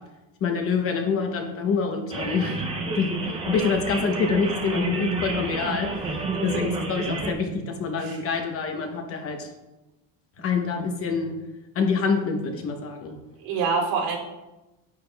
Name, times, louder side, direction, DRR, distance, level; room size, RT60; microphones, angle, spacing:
voice 1, 0.4-3.2 3.5-9.5 10.4-11.3 11.7-13.2, left 5 dB, 30° left, 4 dB, 0.8 m, -26 dB
sound 1, 2.1-7.3, right 3 dB, 15° right, 0.5 m, -30 dB
voice 2, 6.3-6.6 8.0-8.2 13.4-14.2, right 5 dB, 80° right, -2 dB, 2.9 m, -27 dB
9.3 x 9.0 x 2.3 m, 1.0 s
cardioid pair, 150°, 46 cm